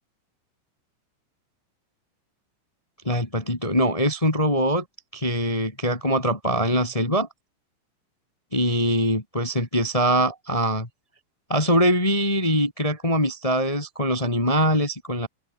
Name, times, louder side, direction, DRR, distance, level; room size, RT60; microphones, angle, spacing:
voice 1, 3.0-4.8 5.1-7.3 8.5-10.9 11.5-15.3, equal, 20° left, 0.8 m, -23 dB
open air
omnidirectional pair, 5.4 m